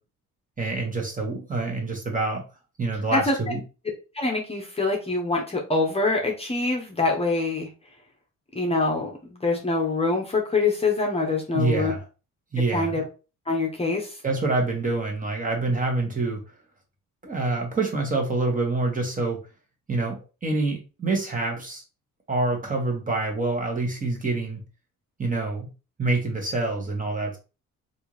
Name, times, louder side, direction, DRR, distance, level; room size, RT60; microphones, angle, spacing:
voice 1, 0.6-2.4 2.8-3.6 11.5-12.0 12.5-12.9 14.2-16.4 17.2-19.4 19.9-21.8 22.3-24.6 25.2-25.7 26.0-27.4, right 3 dB, 25° right, 1 dB, 1.2 m, -26 dB
voice 2, 4.1-7.7 8.6-11.9 12.7-13.0 13.5-14.1, left 3 dB, 20° left, 0 dB, 0.8 m, -25 dB
3.3 x 2.6 x 3.1 m, 0.32 s
cardioid pair, 90°, 30 cm